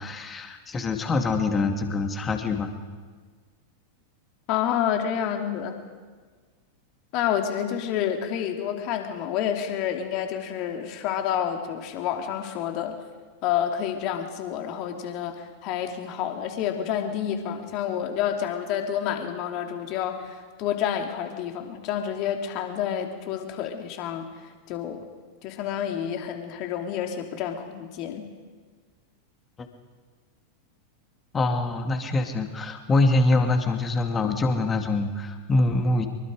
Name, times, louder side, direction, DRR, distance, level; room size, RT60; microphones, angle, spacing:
voice 1, 0.0-2.7 31.3-36.1, left 2 dB, 20° left, 5 dB, 2.5 m, -24 dB
voice 2, 4.5-5.8 7.1-13.0 13.4-25.0 25.4-28.3, left 9 dB, 40° left, 4 dB, 3.0 m, -29 dB
25.0 x 23.0 x 5.1 m, 1.5 s
figure-of-eight pair, 90°, 0 cm